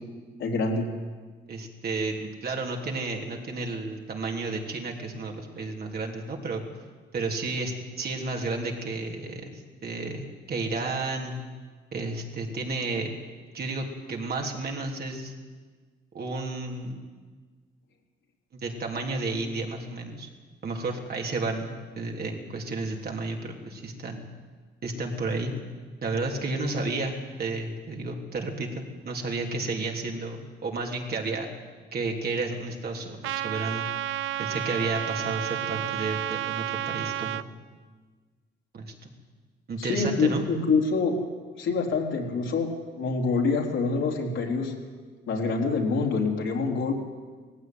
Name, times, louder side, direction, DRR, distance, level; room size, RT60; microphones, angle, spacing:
voice 1, 0.4-0.9 39.8-41.2 41.6-42.7 43.0-44.7 45.3-46.9, left 4 dB, 75° left, 0 dB, 4.0 m, -26 dB
voice 2, 1.5-6.6 7.1-11.4 11.9-13.2 13.5-15.3 16.1-17.0 18.5-20.3 20.6-24.2 24.8-25.5 26.0-31.5 31.9-33.9 34.4-37.5 38.7-39.1 39.7-40.4, right 3 dB, 50° right, 1 dB, 3.4 m, -32 dB
Trumpet, 33.2-37.4, right 12 dB, 85° right, 0.6 m, -31 dB
18.5 x 15.5 x 9.5 m, 1.5 s
cardioid pair, 90°, 20 cm